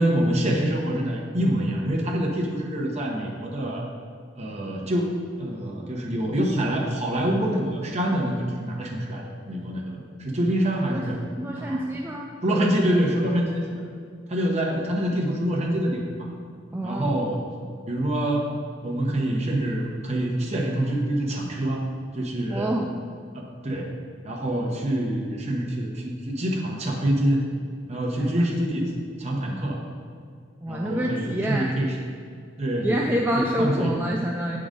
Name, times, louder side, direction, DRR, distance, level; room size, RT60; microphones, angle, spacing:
voice 1, 0.0-3.8 4.4-11.2 11.5-11.8 12.4-13.7 14.3-16.3 16.8-17.4 17.9-18.5 18.8-21.8 22.1-22.7 23.3-23.9 24.2-27.4 27.9-28.9 29.2-29.8 30.7-32.0 32.6-33.9, right 1 dB, 35° right, -1 dB, 1.0 m, -26 dB
voice 2, 10.9-12.7 16.7-17.2 22.5-22.9 28.2-28.5 30.6-31.8 32.8-34.6, equal, 10° right, -1 dB, 0.3 m, -27 dB
7.9 x 3.8 x 5.1 m, 2.2 s
head